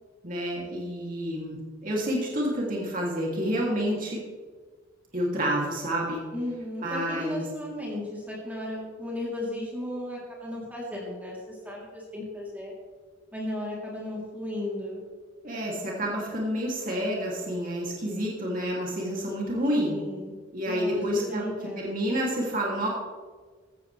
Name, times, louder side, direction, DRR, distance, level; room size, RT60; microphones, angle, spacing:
voice 1, 0.2-4.2 5.1-6.2 6.8-7.4 15.4-20.0 20.5-21.4 21.8-22.9, equal, 45° right, -3 dB, 2.9 m, -29 dB
voice 2, 6.3-12.7 13.3-15.0 19.8-20.3 20.7-22.2, left 1 dB, 10° right, -5 dB, 3.5 m, -35 dB
16.0 x 13.0 x 3.4 m, 1.5 s
head